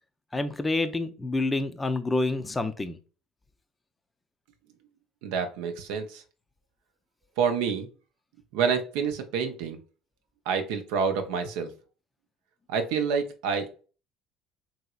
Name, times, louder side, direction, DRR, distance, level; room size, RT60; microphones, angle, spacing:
voice 1, 0.3-3.0, left 2 dB, 20° left, 10 dB, 0.4 m, -28 dB
voice 2, 5.2-6.2 7.4-7.9 8.5-9.8 10.5-11.7 12.7-13.8, right 6 dB, 75° right, 7 dB, 0.5 m, -28 dB
3.0 x 2.8 x 2.3 m, 0.35 s
hypercardioid pair, 70°, 0 cm